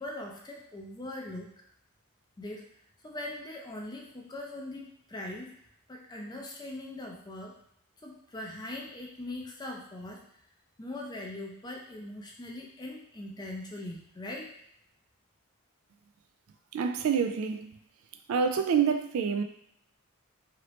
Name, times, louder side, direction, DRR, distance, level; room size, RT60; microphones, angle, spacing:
voice 1, 0.0-1.5 2.4-2.7 3.0-5.5 5.9-7.6 8.0-10.2 10.8-14.5, left 1 dB, 20° left, 0.4 m, -41 dB
voice 2, 16.7-17.8 18.3-19.4, right 6 dB, 70° right, 0.3 m, -27 dB
2.9 x 2.8 x 3.0 m
head